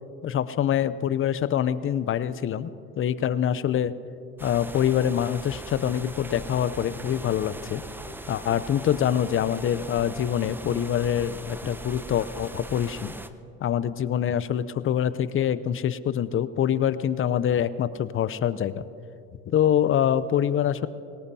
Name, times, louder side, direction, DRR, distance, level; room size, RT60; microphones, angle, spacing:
voice 1, 0.2-2.7 3.0-3.9 4.4-7.8 8.3-13.1 13.6-18.8 19.5-20.9, left 9 dB, 35° left, 16 dB, 0.6 m, -25 dB
sound 1, 4.4-13.3, right 1 dB, 5° right, 0.6 m, -40 dB
22.5 x 18.5 x 2.8 m, 2.6 s
hypercardioid pair, 75°, 36 cm